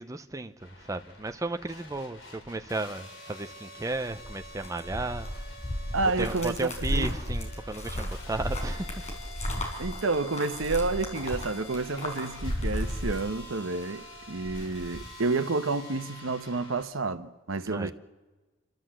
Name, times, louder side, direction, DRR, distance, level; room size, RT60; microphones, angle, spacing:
voice 1, 0.0-5.3 6.2-9.0 17.7-17.9, right 2 dB, 15° right, 0.6 m, -34 dB
sound 1, 0.6-16.8, left 1 dB, 75° left, 4.9 m, -47 dB
sound 2, 3.9-13.8 14.2-15.1, equal, 35° left, 4.4 m, -34 dB
voice 2, 5.9-7.1 9.8-17.9, right 3 dB, 90° right, 1.0 m, -30 dB
29.5 x 13.0 x 7.6 m
head